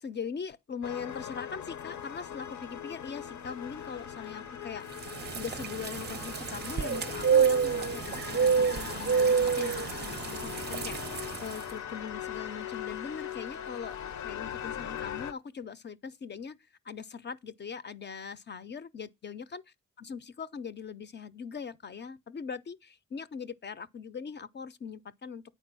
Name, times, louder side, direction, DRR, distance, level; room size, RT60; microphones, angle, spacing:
voice 1, 0.0-5.0 5.3-14.0 14.2-16.6 16.8-19.6 20.0-25.4, left 6 dB, 40° left, 0.4 m, -41 dB
sound 1, 0.8-15.3, left 9 dB, 75° left, 0.7 m, -40 dB
sound 2, 5.0-11.6, right 6 dB, 35° right, 0.5 m, -28 dB
8.8 x 4.6 x 6.0 m
wide cardioid pair, 130°, 29 cm